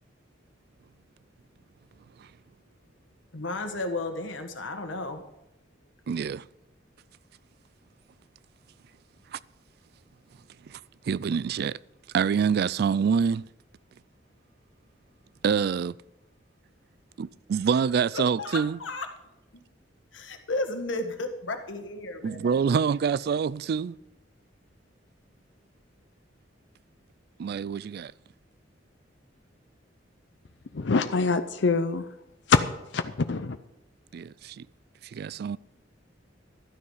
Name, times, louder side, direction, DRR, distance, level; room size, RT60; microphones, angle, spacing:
voice 1, 3.3-5.2 18.1-19.1 20.1-22.5, left 2 dB, 90° left, 1.5 m, -33 dB
voice 2, 6.1-6.4 9.3-9.4 10.7-10.8 11.1-11.8 12.1-13.5 15.4-15.9 17.2-18.8 22.2-24.0 27.4-28.1 34.1-34.7 35.1-35.6, right 6 dB, 55° right, 0.3 m, -26 dB
voice 3, 30.7-32.0 32.5-32.6 32.9-33.6, left 4 dB, 65° left, 0.6 m, -24 dB
12.5 x 9.5 x 5.6 m
head